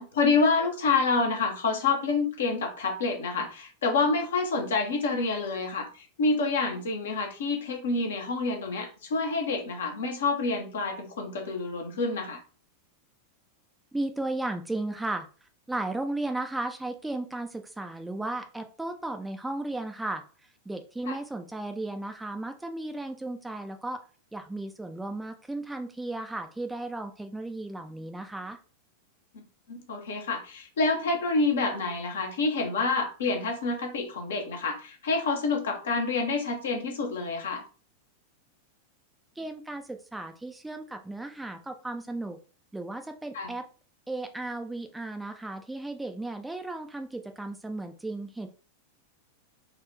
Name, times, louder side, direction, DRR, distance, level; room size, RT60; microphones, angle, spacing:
voice 1, 0.0-12.4 21.1-21.2 29.3-29.4 29.7-37.6 43.3-43.5, left 3 dB, 60° left, 4 dB, 0.8 m, -28 dB
voice 2, 13.9-15.3 15.7-20.2 20.7-24.0 24.3-28.6 39.4-42.4 42.7-43.7 44.1-48.5, right 2 dB, 5° right, 6 dB, 0.4 m, -35 dB
3.7 x 2.3 x 3.2 m, 0.36 s
figure-of-eight pair, 90°, 0 cm